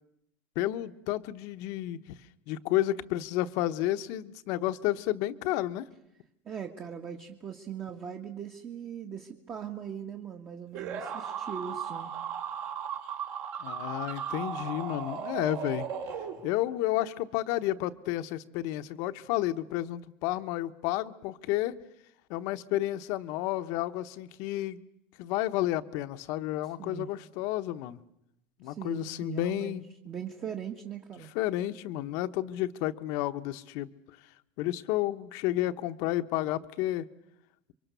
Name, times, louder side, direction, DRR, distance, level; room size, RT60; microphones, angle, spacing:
voice 1, 0.5-2.0 2.5-5.9 13.6-15.9 16.4-21.8 22.3-24.8 25.2-28.0 28.6-29.9 31.3-33.9 34.6-37.0, left 15 dB, 70° left, 10 dB, 1.1 m, -31 dB
voice 2, 6.4-12.1 26.8-27.1 28.6-29.8 30.1-31.3, right 8 dB, 30° right, 3 dB, 1.7 m, -40 dB
sound 1, 10.7-16.8, right 7 dB, 60° right, 3.7 m, -36 dB
28.0 x 24.0 x 6.9 m, 0.82 s
supercardioid pair, 135°, 6 cm